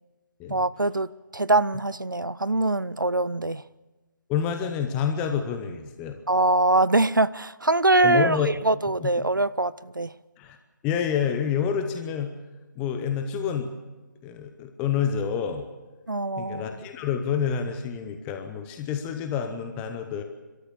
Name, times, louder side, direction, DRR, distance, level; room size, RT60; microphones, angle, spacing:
voice 1, 0.5-3.6 6.3-8.4 8.6-10.1 16.1-16.7, right 2 dB, 85° right, 0.6 m, -23 dB
voice 2, 4.3-6.2 8.0-8.5 9.0-9.3 10.4-10.6 10.8-12.3 12.8-13.7 14.2-15.6 16.4-20.2, left 7 dB, 10° left, 0.8 m, -28 dB
30.0 x 13.0 x 7.2 m
figure-of-eight pair, 150°, 10 cm